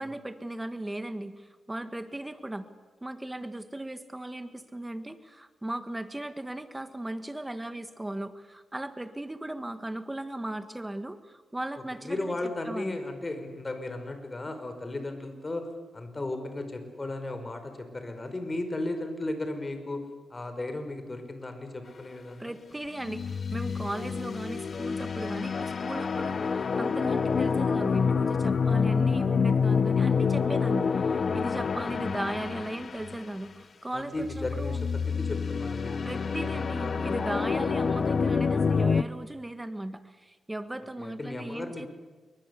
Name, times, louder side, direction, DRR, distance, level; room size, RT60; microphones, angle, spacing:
voice 1, 0.0-2.7 3.0-13.0 22.4-34.8 36.0-41.9, right 1 dB, 15° right, 10 dB, 1.6 m, -37 dB
voice 2, 12.0-15.7 15.9-20.0 20.3-22.5 31.8-32.0 33.9-36.9 41.0-41.9, left 2 dB, 25° left, 7 dB, 5.1 m, -35 dB
sound 1, 23.0-33.3 34.2-39.0, left 5 dB, 50° left, 0.8 m, -27 dB
27.0 x 23.5 x 8.4 m, 1.3 s
cardioid pair, 95°, 0 cm